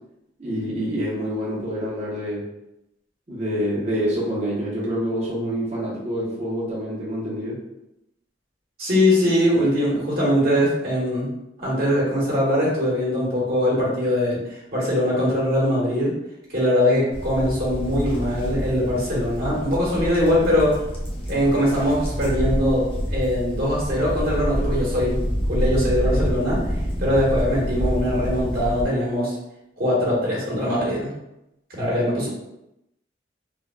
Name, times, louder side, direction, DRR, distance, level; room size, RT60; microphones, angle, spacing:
voice 1, 0.4-2.4 3.3-7.6 32.1-32.3, equal, 40° right, -6 dB, 0.9 m, -27 dB
voice 2, 8.8-11.3 11.6-14.4 14.7-16.1 16.5-20.8 21.3-25.2 25.5-26.6 27.0-29.3 29.8-31.1 31.7-32.3, left 1 dB, 55° right, -6 dB, 1.3 m, -21 dB
sound 1, 17.1-28.8, equal, 30° left, 0.6 m, -27 dB
3.4 x 2.2 x 2.2 m, 0.87 s
head